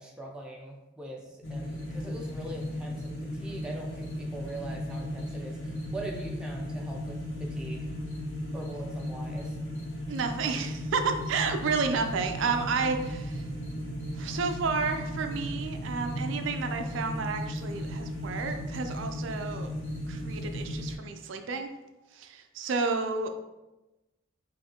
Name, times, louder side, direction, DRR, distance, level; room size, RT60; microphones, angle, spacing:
voice 1, 0.0-7.9 8.5-9.6, right 1 dB, 5° right, -1 dB, 0.5 m, -42 dB
sound 1, 1.4-21.0, equal, 80° left, 0.9 m, -36 dB
voice 2, 10.1-13.4 14.2-19.7 20.1-21.7 22.1-23.3, right 4 dB, 70° right, 6 dB, 0.4 m, -31 dB
5.6 x 2.6 x 2.8 m, 1.0 s
head